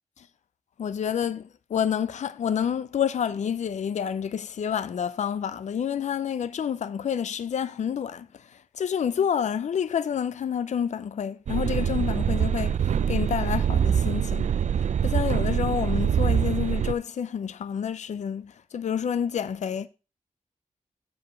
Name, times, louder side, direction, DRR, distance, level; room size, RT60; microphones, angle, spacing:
voice 1, 0.8-8.3 8.7-14.5 15.0-19.9, left 8 dB, 65° left, 0.5 m, -28 dB
sound 1, 11.5-16.9, right 8 dB, 65° right, 0.4 m, -24 dB
7.4 x 4.8 x 5.6 m
wide cardioid pair, 100°, 13 cm